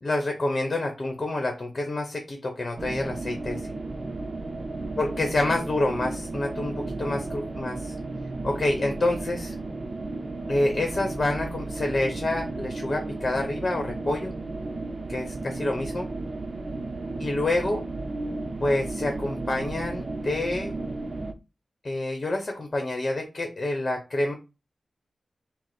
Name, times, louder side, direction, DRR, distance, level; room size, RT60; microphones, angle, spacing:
voice 1, 0.0-3.6 5.0-8.0 8.4-9.5 10.5-14.3 15.1-16.1 17.2-17.8 18.6-20.7 21.8-24.3, left 2 dB, 45° left, 3 dB, 0.9 m, -27 dB
sound 1, 2.8-21.3, right 2 dB, 50° right, 0.6 m, -34 dB
4.6 x 2.0 x 4.2 m, 0.28 s
cardioid pair, 55°, 0 cm